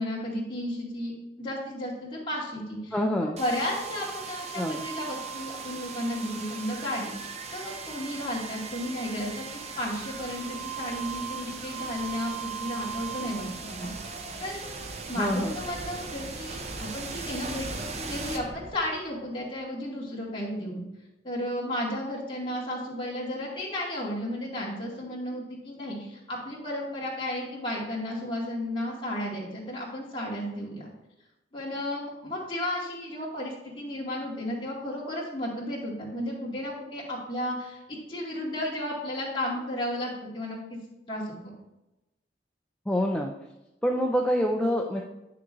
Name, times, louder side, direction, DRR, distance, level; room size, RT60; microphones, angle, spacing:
voice 1, 0.0-3.0 3.2-9.5 9.8-20.8 21.2-30.9 31.5-40.8 41.1-41.2, left 1 dB, 30° left, -5 dB, 2.2 m, -33 dB
voice 2, 2.9-3.4 4.5-4.8 15.2-15.5 42.9-43.3 43.8-45.0, equal, 5° left, 0 dB, 0.4 m, -26 dB
sound 1, 3.4-19.2, right 5 dB, 35° right, 0.7 m, -38 dB
9.6 x 6.7 x 2.6 m, 0.96 s
head